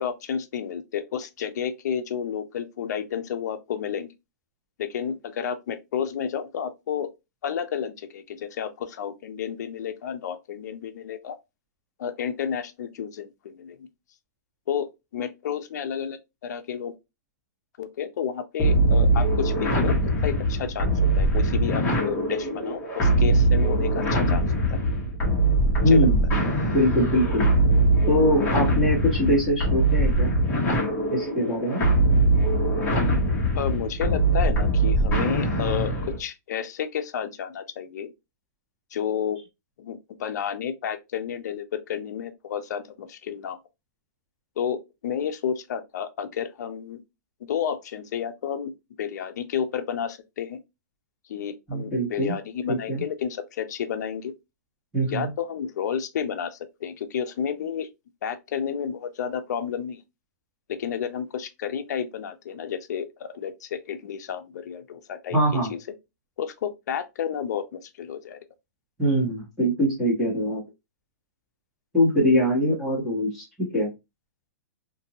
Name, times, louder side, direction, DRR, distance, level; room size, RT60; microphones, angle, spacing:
voice 1, 0.0-4.1 4.8-7.1 7.4-11.4 12.0-13.9 14.7-14.9 15.1-16.9 17.8-20.0 20.2-24.8 25.8-26.1 33.6-38.1 38.9-39.4 39.8-43.6 44.6-47.0 47.5-48.7 49.0-50.6 51.3-54.3 55.1-57.9 58.2-60.0 60.7-65.8 66.4-68.4 72.5-72.8, left 8 dB, 65° left, 0.5 m, -31 dB
sound 1, 18.6-36.2, right 2 dB, 15° left, 1.0 m, -22 dB
voice 2, 25.8-26.2 26.7-27.5 28.1-30.3 31.1-31.8 51.7-52.4 52.7-53.0 54.9-55.3 65.3-65.7 69.0-70.6 71.9-73.9, equal, ahead, 1.2 m, -23 dB
2.6 x 2.6 x 2.8 m
hypercardioid pair, 160°, 10 cm